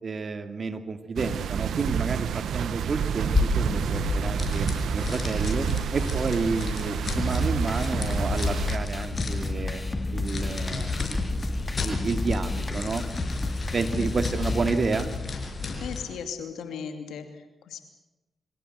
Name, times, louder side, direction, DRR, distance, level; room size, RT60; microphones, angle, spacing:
voice 1, 0.0-4.7 4.9-9.8 10.1-10.9 11.8-13.0 13.7-15.1, right 4 dB, 55° right, 9 dB, 2.4 m, -30 dB
sound 1, 1.2-8.8, right 8 dB, 85° right, 1.0 m, -29 dB
sound 2, 3.2-16.1, left 4 dB, 50° left, 5.9 m, -32 dB
sound 3, 7.2-15.2, left 2 dB, 30° left, 2.4 m, -32 dB
voice 2, 15.8-17.8, left 6 dB, 90° left, 7 dB, 2.8 m, -37 dB
25.5 x 17.0 x 8.1 m, 1.0 s
supercardioid pair, 50°, 0 cm